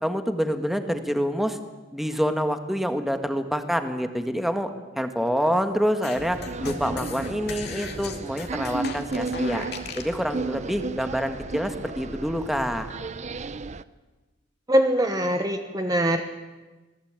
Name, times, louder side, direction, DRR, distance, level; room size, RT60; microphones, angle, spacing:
voice 1, 0.0-1.6 1.9-9.6 10.0-12.9, equal, ahead, 7 dB, 1.6 m, -27 dB
sound 1, 6.0-10.2, left 4 dB, 55° left, 2.5 m, -37 dB
sound 2, 6.2-13.8, right 3 dB, 40° right, 0.7 m, -34 dB
voice 2, 14.7-16.2, equal, 20° right, 6 dB, 1.3 m, -22 dB
25.5 x 19.0 x 9.0 m, 1.2 s
head